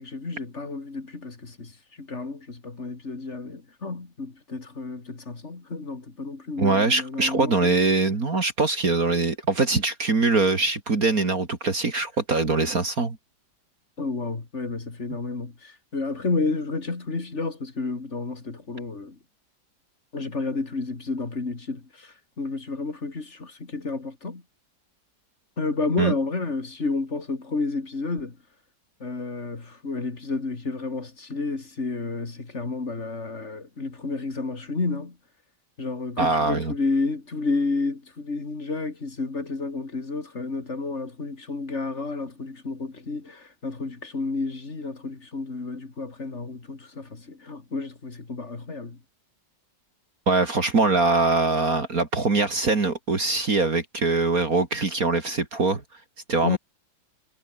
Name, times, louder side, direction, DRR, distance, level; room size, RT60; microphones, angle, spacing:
voice 1, 0.0-1.7 2.0-7.7 14.0-19.2 20.1-24.4 25.6-28.4 29.0-35.2 35.8-49.0 56.4-56.6, left 3 dB, 35° left, 3.0 m, -31 dB
voice 2, 6.6-13.2 26.0-26.1 36.2-36.7 50.3-55.8 56.3-56.6, right 3 dB, 45° right, 3.1 m, -23 dB
omnidirectional pair, 2.1 m